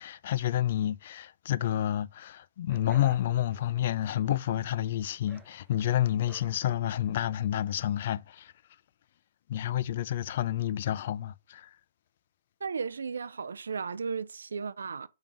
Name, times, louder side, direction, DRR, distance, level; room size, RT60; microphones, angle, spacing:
voice 1, 0.0-8.5 9.5-11.8, left 12 dB, 50° left, 0.4 m, -29 dB
sound 1, 2.7-7.7, right 2 dB, 5° right, 0.8 m, -55 dB
voice 2, 12.6-15.1, right 5 dB, 85° right, 0.4 m, -35 dB
5.3 x 3.7 x 5.9 m
hypercardioid pair, 150°, 0 cm